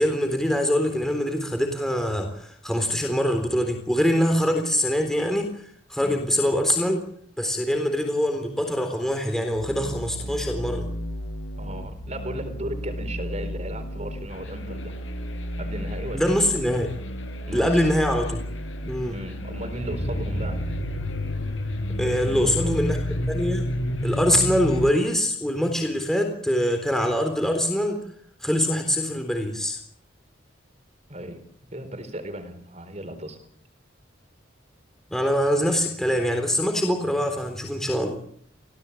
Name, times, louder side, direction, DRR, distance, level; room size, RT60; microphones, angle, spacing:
voice 1, 0.0-5.5 5.9-7.0 7.4-10.9 16.1-16.9 17.5-18.4 18.8-19.2 22.0-23.0 23.3-23.7 24.0-28.0 28.4-29.8 35.1-38.2, equal, ahead, 4 dB, 3.7 m, -24 dB
sound 1, 9.6-24.9, equal, 85° left, 4.7 m, -31 dB
voice 2, 11.6-15.0 15.6-16.4 17.5-17.9 19.1-20.6 22.0-22.8 31.1-31.4 31.7-33.4, right 1 dB, 35° right, 9 dB, 4.4 m, -36 dB
27.0 x 17.5 x 8.5 m, 0.63 s
head